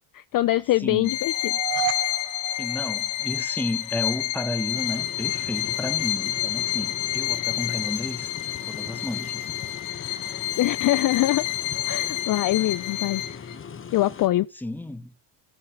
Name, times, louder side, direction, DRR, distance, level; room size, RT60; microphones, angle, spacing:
voice 1, 0.1-1.5 10.6-11.4 11.9-13.2 13.9-14.5, left 15 dB, 45° left, 0.5 m, -23 dB
voice 2, 0.8-1.2 2.5-8.3 8.7-9.5 14.5-15.1, left 1 dB, 5° left, 1.1 m, -32 dB
Bowed string instrument, 1.0-13.5, left 15 dB, 85° left, 1.0 m, -29 dB
sound 1, 1.3-3.6, right 16 dB, 70° right, 1.2 m, -32 dB
sound 2, 4.7-14.3, left 6 dB, 25° left, 1.1 m, -40 dB
13.5 x 5.7 x 6.1 m
cardioid pair, 100°, 47 cm